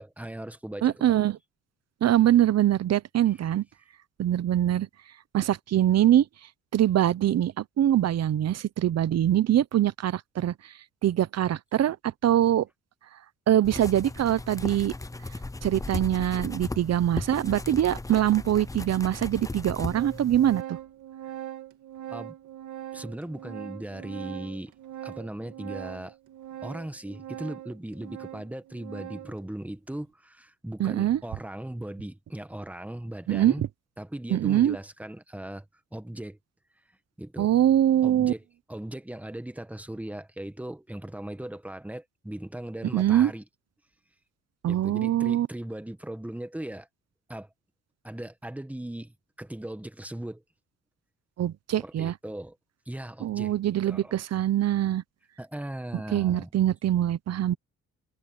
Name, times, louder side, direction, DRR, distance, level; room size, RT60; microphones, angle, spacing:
voice 1, 0.0-1.2 3.2-3.4 22.1-22.3 22.9-24.7 25.0-26.2 26.6-33.6 34.0-35.6 35.9-36.4 37.2-37.5 38.0-43.4 44.6-46.9 47.3-47.5 48.0-50.4 51.8-52.6 52.8-53.5 53.8-54.2 55.4-56.5, right 1 dB, 5° right, 1.6 m, -38 dB
voice 2, 0.8-1.4 2.0-3.6 4.2-4.9 5.3-6.2 6.7-10.5 11.0-12.7 13.5-14.9 15.6-20.8 30.8-31.2 33.3-33.7 34.3-34.8 37.4-38.3 42.9-43.3 44.6-45.5 51.4-52.1 53.2-55.0 56.1-57.5, right 12 dB, 60° right, 0.9 m, -23 dB
sound 1, 13.6-20.6, left 2 dB, 10° left, 0.8 m, -36 dB
Organ, 19.1-19.2 19.5-29.4, right 12 dB, 75° right, 2.2 m, -42 dB
cardioid pair, 90°, 30 cm